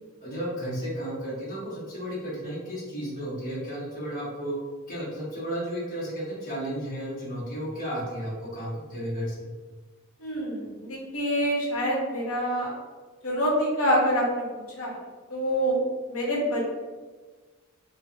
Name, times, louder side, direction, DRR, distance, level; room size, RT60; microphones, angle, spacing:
voice 1, 0.2-4.5 4.9-9.4, equal, 40° left, -7 dB, 0.9 m, -33 dB
voice 2, 10.2-12.7 13.2-14.9 15.3-15.8 16.1-16.6, equal, 85° left, -3 dB, 0.7 m, -26 dB
2.4 x 2.3 x 2.6 m, 1.4 s
head